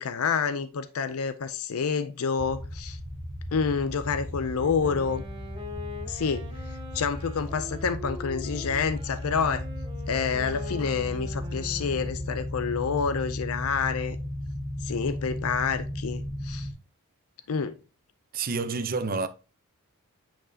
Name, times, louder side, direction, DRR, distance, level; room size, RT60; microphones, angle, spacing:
voice 1, 0.0-3.0 3.5-5.2 6.1-9.6 10.1-14.2 14.8-16.7 17.5-17.8, left 6 dB, 70° left, 0.5 m, -28 dB
sound 1, 2.4-16.7, left 1 dB, 5° left, 3.4 m, -35 dB
Wind instrument woodwind instrument, 4.5-12.4, left 1 dB, 25° right, 2.2 m, -43 dB
voice 2, 18.3-19.3, right 4 dB, 40° right, 0.6 m, -28 dB
8.8 x 5.3 x 2.7 m
head